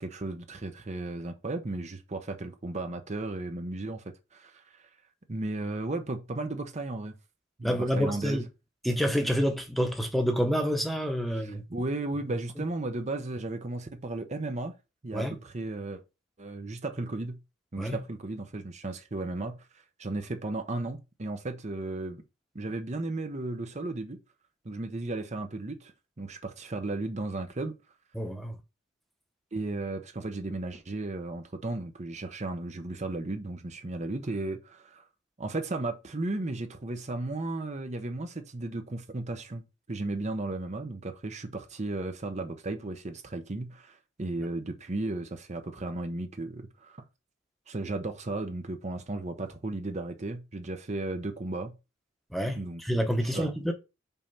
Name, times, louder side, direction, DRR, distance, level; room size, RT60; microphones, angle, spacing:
voice 1, 0.0-4.9 5.3-7.1 7.6-8.4 11.3-14.7 15.0-16.0 16.4-17.4 17.7-22.2 22.5-24.2 24.6-27.7 29.5-35.0 35.4-47.0 47.7-51.7 52.6-52.8 53.3-53.5, right 2 dB, 35° right, 0.8 m, -35 dB
voice 2, 7.6-8.4 8.8-11.6 15.1-15.4 17.8-18.0 28.1-28.6 52.3-53.7, equal, ahead, 1.0 m, -28 dB
5.5 x 4.3 x 5.5 m
head